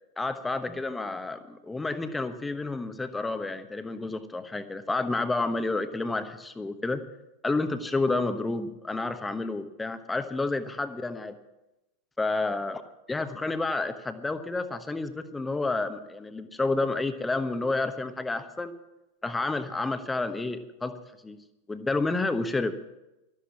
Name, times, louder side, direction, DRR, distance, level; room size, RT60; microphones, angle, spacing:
voice 1, 0.2-7.0 7.4-11.4 12.2-12.8 13.1-18.7 19.2-20.9 21.2-21.4 21.7-22.7, left 3 dB, 10° left, 10 dB, 1.1 m, -30 dB
13.0 x 11.5 x 7.2 m, 0.96 s
figure-of-eight pair, 90°, 0 cm